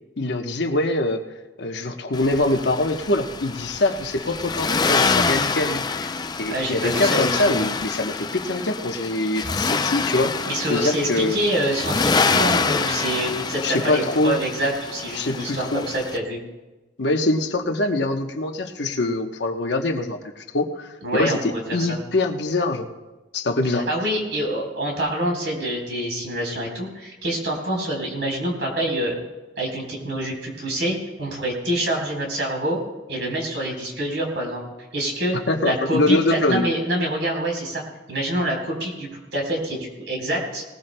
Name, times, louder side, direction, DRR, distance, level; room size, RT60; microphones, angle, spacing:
voice 1, 0.2-1.2 1.6-10.3 10.7-11.4 13.6-14.4 15.1-15.9 17.0-22.9 23.3-23.9 35.5-36.6, left 2 dB, 70° left, 5 dB, 1.0 m, -24 dB
Accelerating revving vroom, 2.1-16.2, left 4 dB, 25° left, 0.4 m, -26 dB
voice 2, 6.5-7.7 10.5-16.4 21.0-22.0 23.9-29.2 29.6-32.8 33.1-34.6 34.9-35.4 35.6-37.8 38.1-40.6, right 1 dB, 75° right, 0 dB, 4.0 m, -26 dB
19.5 x 19.5 x 2.2 m, 1.1 s
head